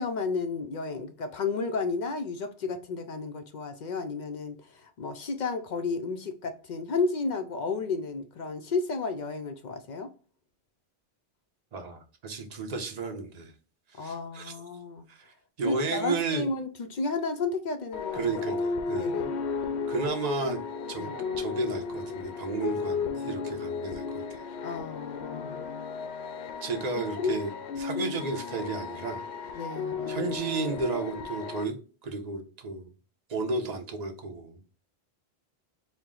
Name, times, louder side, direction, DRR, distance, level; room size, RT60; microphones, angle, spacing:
voice 1, 0.0-4.6 4.8-10.1 14.0-15.0 15.6-18.3 18.9-19.3 21.0-21.2 24.6-25.6 26.9-27.4 28.0-28.1 29.5-30.3, left 4 dB, 55° left, 0.5 m, -32 dB
voice 2, 11.7-13.5 14.0-14.5 15.1-16.4 18.1-19.2 19.9-20.6 20.9-21.1 21.4-24.5 26.6-29.2 29.5-29.6 30.1-31.7 32.0-32.9 33.3-34.6, right 3 dB, 40° right, 0.9 m, -33 dB
sound 1, 17.9-31.6, left 5 dB, 80° left, 0.9 m, -34 dB
4.5 x 2.1 x 3.7 m
omnidirectional pair, 1.1 m